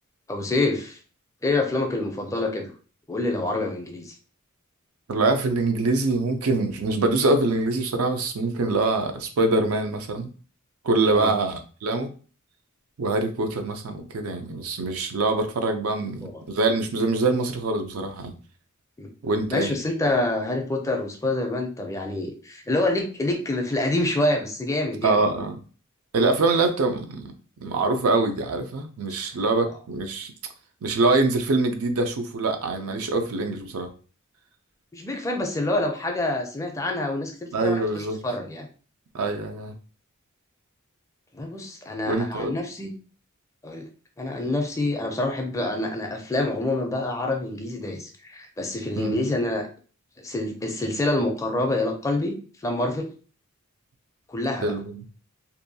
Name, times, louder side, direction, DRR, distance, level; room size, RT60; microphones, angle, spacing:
voice 1, 0.3-1.0 1.4-2.7 3.1-4.1 11.1-11.3 16.0-16.4 19.0-19.1 19.5-25.2 29.7-29.8 34.9-38.7 41.3-42.9 43.6-43.9 44.2-49.7 50.2-52.4 52.6-53.1 54.3-54.7, left 2 dB, 15° left, 3 dB, 0.4 m, -27 dB
voice 2, 5.1-10.3 10.8-12.1 13.0-18.4 19.2-19.7 25.0-25.6 26.1-27.3 27.6-30.3 30.8-33.9 37.5-38.2 39.1-39.7 42.1-42.5 49.0-49.2 54.6-55.0, right 3 dB, 75° right, 6 dB, 0.5 m, -24 dB
2.6 x 2.2 x 2.6 m, 0.38 s
head